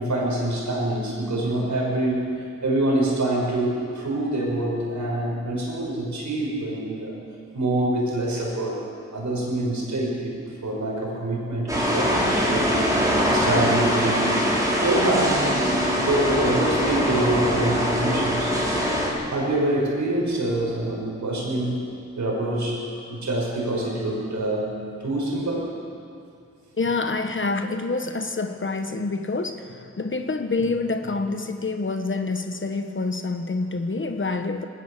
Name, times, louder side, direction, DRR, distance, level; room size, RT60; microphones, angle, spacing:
voice 1, 0.0-7.2 7.5-8.8 9.1-14.4 14.8-15.5 15.9-18.6 19.3-21.8 22.2-25.7, right 1 dB, 80° right, -3 dB, 6.2 m, -25 dB
sound 1, 11.7-19.1, equal, 10° right, 5.0 m, -23 dB
voice 2, 26.8-34.6, left 3 dB, 45° left, 7 dB, 1.2 m, -27 dB
20.5 x 17.5 x 7.4 m, 2.4 s
wide cardioid pair, 75°, 29 cm